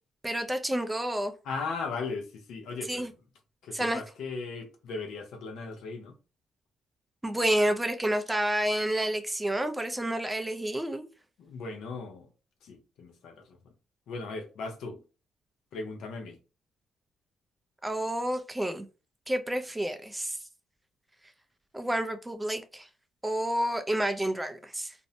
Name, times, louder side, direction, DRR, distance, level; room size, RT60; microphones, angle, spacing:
voice 1, 0.2-1.3 2.9-3.1 3.7-4.0 7.2-11.1 17.8-18.9 19.3-20.4 21.7-22.9 23.2-24.9, right 1 dB, 10° right, 0.4 m, -29 dB
voice 2, 1.4-3.1 3.6-6.1 11.4-12.3 12.6-13.6 14.1-15.0 15.7-16.4, left 4 dB, 80° left, 0.6 m, -37 dB
2.5 x 2.0 x 2.7 m
cardioid pair, 90°, 0 cm